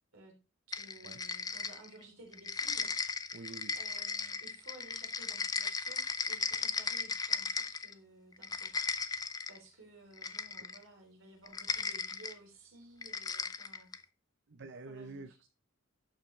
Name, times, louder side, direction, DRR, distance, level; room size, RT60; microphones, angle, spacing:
sound 1, 0.7-2.0 2.3-7.9 8.3-9.6 10.2-10.8 11.5-12.3 13.0-14.0, left 4 dB, 20° left, 0.5 m, -36 dB
voice 1, 0.7-3.1 3.7-9.0 9.5-13.9 14.9-15.5, right 2 dB, 75° right, 1 dB, 3.5 m, -56 dB
voice 2, 3.3-3.7 14.5-15.5, right 3 dB, 60° right, 8 dB, 0.7 m, -47 dB
11.5 x 5.8 x 3.3 m, 0.30 s
head